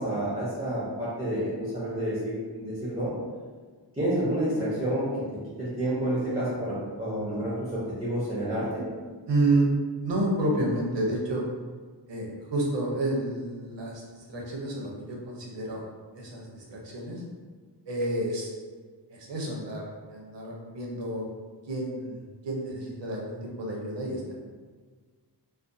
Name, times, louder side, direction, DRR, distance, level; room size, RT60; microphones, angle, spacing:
voice 1, 0.0-3.1 4.0-8.9, right 1 dB, 15° right, -9 dB, 0.5 m, -29 dB
voice 2, 9.3-9.7 10.0-11.4 12.1-15.8 16.1-17.2 17.9-18.5 19.1-21.2 21.7-24.3, right 2 dB, 75° right, -2 dB, 0.7 m, -30 dB
2.4 x 2.2 x 2.5 m, 1.5 s
wide cardioid pair, 150°, 43 cm